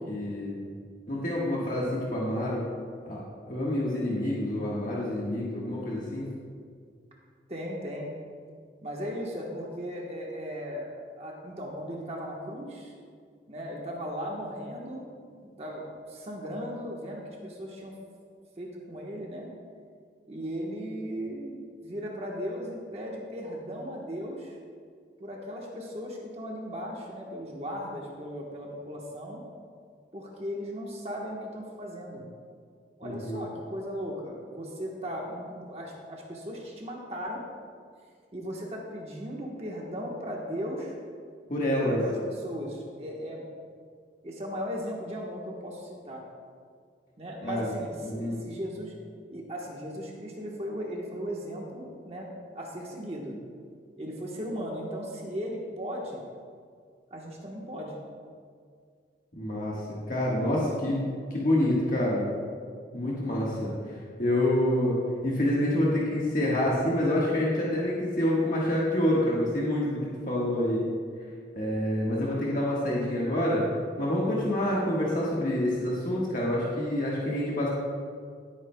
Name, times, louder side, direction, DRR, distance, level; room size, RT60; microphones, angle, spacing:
voice 1, 0.1-0.7 1.1-2.7 3.0-3.2 3.5-6.3 33.0-33.4 41.5-42.0 47.4-47.7 48.0-48.4 59.3-59.8 60.1-62.3 62.9-63.7 64.2-70.0 70.3-70.8 71.5-73.6 74.0-77.7, left 1 dB, 50° left, -6 dB, 1.5 m, -27 dB
voice 2, 7.5-8.1 8.8-10.9 11.2-12.9 13.5-15.1 15.3-17.9 18.6-19.5 20.3-24.6 25.2-29.4 30.1-32.2 33.0-37.4 38.3-40.9 41.8-43.4 44.2-46.2 47.2-48.9 49.3-53.4 54.0-56.2 57.1-58.0, equal, 35° right, -2 dB, 1.2 m, -37 dB
17.0 x 8.8 x 2.3 m, 2.1 s
head